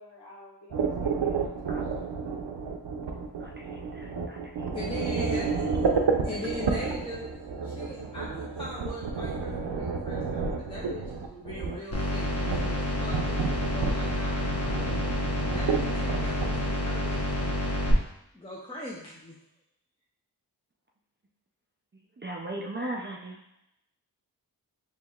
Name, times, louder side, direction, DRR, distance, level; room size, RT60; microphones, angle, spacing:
voice 1, 0.0-2.0, left 2 dB, 75° left, -8 dB, 1.3 m, -52 dB
sound 1, 0.7-16.7, right 5 dB, 90° right, 0.5 m, -31 dB
voice 2, 3.9-4.4 22.2-23.4, right 1 dB, 30° right, 0 dB, 0.4 m, -37 dB
voice 3, 4.7-5.9 6.2-7.2 7.6-15.0 15.4-17.7 18.3-19.4, left 1 dB, 15° left, -5 dB, 0.7 m, -40 dB
sound 2, 11.9-17.9, left 1 dB, 35° left, 1.0 m, -29 dB
4.5 x 3.1 x 2.3 m, 0.78 s
wide cardioid pair, 60°, 41 cm